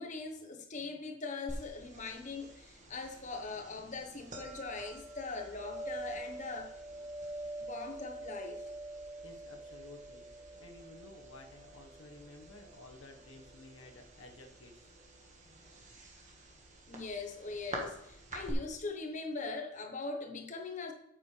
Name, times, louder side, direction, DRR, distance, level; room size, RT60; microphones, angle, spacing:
voice 1, 0.0-6.7 7.6-8.6 15.5-15.6 16.9-20.9, left 3 dB, 35° left, 3 dB, 1.2 m, -41 dB
sound 1, 1.5-18.5, right 1 dB, 35° right, 1.7 m, -47 dB
voice 2, 9.2-10.2 10.6-14.8, left 2 dB, 75° left, 3 dB, 1.4 m, -54 dB
8.5 x 8.3 x 3.4 m, 0.83 s
head